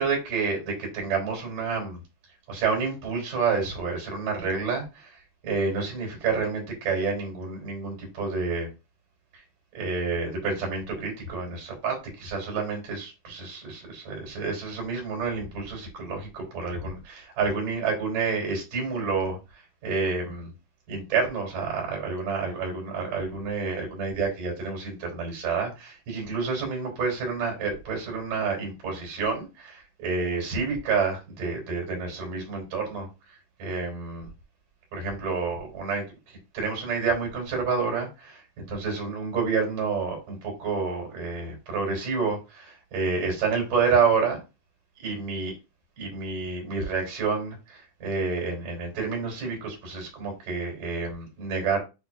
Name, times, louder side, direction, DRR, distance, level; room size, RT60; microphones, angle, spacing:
voice 1, 0.0-2.0 2.5-5.2 5.4-8.7 9.8-19.4 19.8-20.5 20.9-33.1 33.6-34.3 34.9-44.4 45.0-45.5 46.0-51.8, right 4 dB, 75° right, 5.3 m, -29 dB
11.0 x 3.7 x 2.6 m
omnidirectional pair, 3.8 m